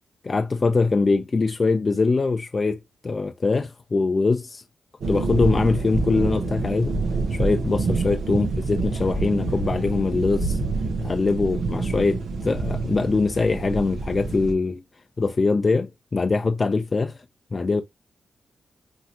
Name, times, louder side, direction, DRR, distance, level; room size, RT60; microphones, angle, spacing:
voice 1, 0.2-4.6 5.1-7.0 7.3-10.6 11.0-14.8 15.2-17.1 17.5-17.8, left 3 dB, 40° left, 0.5 m, -23 dB
sound 1, 5.0-14.5, right 3 dB, 85° right, 0.9 m, -27 dB
5.8 x 2.7 x 2.8 m
cardioid pair, 70°, 0 cm